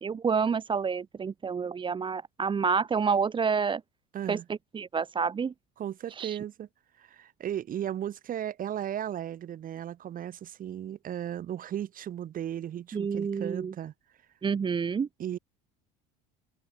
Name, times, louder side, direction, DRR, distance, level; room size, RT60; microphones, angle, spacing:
voice 1, 0.0-3.8 4.3-5.5 6.1-6.4 12.9-13.7 14.4-15.1, right 6 dB, 25° right, 1.0 m, -28 dB
voice 2, 4.1-4.4 5.8-6.7 7.0-13.9 15.2-15.4, right 10 dB, 45° right, 5.0 m, -35 dB
open air
supercardioid pair, 95°, 19 cm